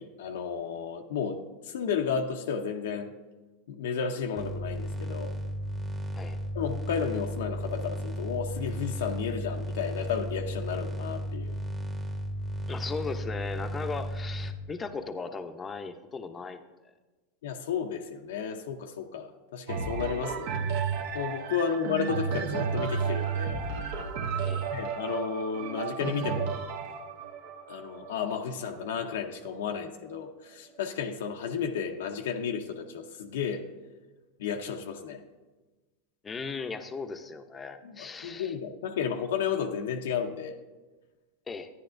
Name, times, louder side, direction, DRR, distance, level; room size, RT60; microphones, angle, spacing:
voice 1, 0.0-3.1 3.7-5.3 6.5-11.6 17.4-20.5 21.1-23.6 24.3-24.5 24.7-26.6 27.7-33.6 34.4-35.2 37.8-40.6, left 7 dB, 80° left, 4 dB, 0.6 m, -33 dB
sound 1, 4.4-14.5, equal, 15° right, 1.1 m, -34 dB
voice 2, 12.7-16.6 24.4-24.7 36.2-38.5 41.5-41.7, left 4 dB, 20° left, 8 dB, 0.6 m, -37 dB
sound 2, 19.7-29.5 30.1-30.2, right 6 dB, 65° right, 1.0 m, -32 dB
12.0 x 9.8 x 2.6 m, 1.2 s
supercardioid pair, 120°, 0 cm